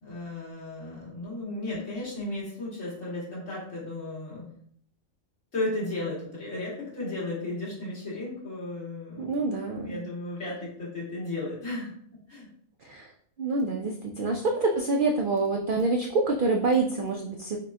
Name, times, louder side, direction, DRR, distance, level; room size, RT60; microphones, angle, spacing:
voice 1, 0.0-4.5 5.5-9.3 9.8-11.9 12.3-12.5, left 2 dB, 70° left, -7 dB, 2.4 m, -34 dB
voice 2, 9.2-10.0 12.8-13.1 13.4-17.6, right 3 dB, 80° right, 1 dB, 0.4 m, -26 dB
5.0 x 2.2 x 3.6 m, 0.63 s
omnidirectional pair, 1.4 m